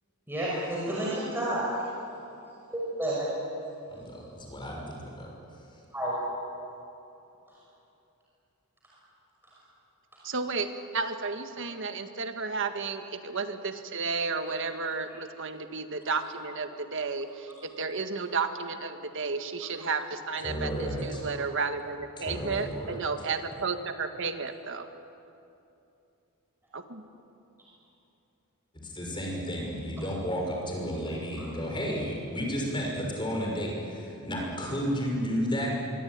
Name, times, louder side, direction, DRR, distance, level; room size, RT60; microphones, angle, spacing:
voice 1, 0.3-1.6 2.7-3.3 5.9-6.2 21.3-21.4 31.4-31.5, right 1 dB, 10° right, -6 dB, 5.9 m, -30 dB
voice 2, 3.9-5.3 20.4-21.3 22.2-23.1 28.8-35.8, equal, 20° left, -1 dB, 6.2 m, -32 dB
voice 3, 10.2-24.9 26.7-27.0, right 4 dB, 60° right, 7 dB, 1.8 m, -32 dB
25.5 x 23.5 x 9.5 m, 2.7 s
head